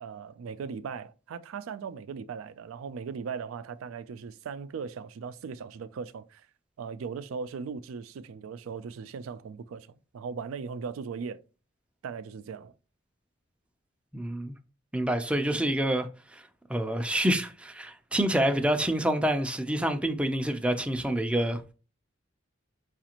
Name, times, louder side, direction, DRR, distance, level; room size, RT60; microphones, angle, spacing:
voice 1, 0.0-6.5 6.8-9.9 10.1-11.4 12.0-12.7, right 6 dB, 90° right, 0.3 m, -38 dB
voice 2, 14.1-14.6 14.9-16.1 16.3-16.4 16.7-21.6, right 1 dB, 5° right, 0.4 m, -27 dB
4.9 x 2.4 x 2.8 m
head